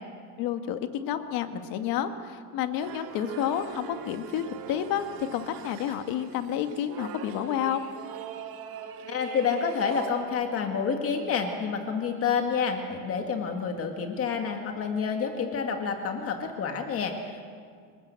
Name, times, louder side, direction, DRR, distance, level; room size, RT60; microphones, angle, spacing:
voice 1, 0.4-7.8, left 9 dB, 55° left, 8 dB, 1.8 m, -30 dB
sound 1, 2.8-10.2, right 8 dB, 60° right, 2.5 m, -42 dB
voice 2, 9.1-17.4, left 6 dB, 35° left, 4 dB, 1.8 m, -29 dB
27.5 x 19.5 x 8.3 m, 2.1 s
cardioid pair, 175°, 41 cm